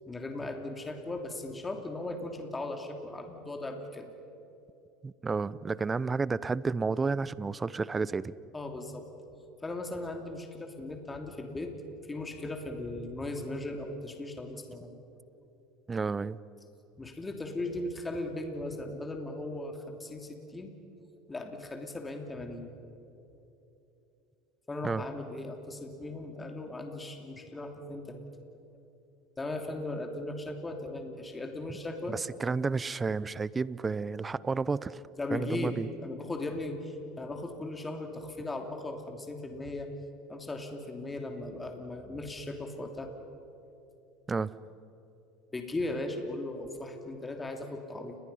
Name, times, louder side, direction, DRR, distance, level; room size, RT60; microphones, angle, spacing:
voice 1, 0.1-4.1 8.5-9.1 9.6-11.7 12.0-15.0 17.0-20.7 21.3-22.7 24.7-28.3 29.4-32.2 35.2-39.9 40.3-43.1 45.5-48.2, left 2 dB, 15° left, 4 dB, 2.9 m, -38 dB
voice 2, 5.0-8.4 15.9-16.4 24.8-25.0 32.1-35.0 35.3-35.9 44.3-44.5, right 4 dB, 20° right, 20 dB, 0.7 m, -31 dB
30.0 x 21.0 x 5.6 m, 2.9 s
hypercardioid pair, 75°, 0 cm